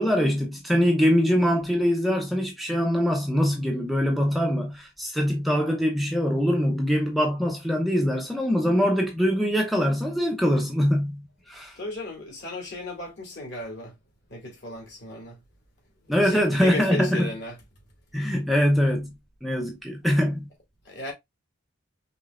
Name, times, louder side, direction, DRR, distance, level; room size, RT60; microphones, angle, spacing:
voice 1, 0.0-11.8 16.1-17.3 18.1-20.5, equal, ahead, 0.5 m, -23 dB
voice 2, 11.8-13.9 14.3-15.4 16.2-17.5 20.8-21.1, left 1 dB, 55° left, 2.3 m, -35 dB
5.2 x 3.1 x 2.4 m
head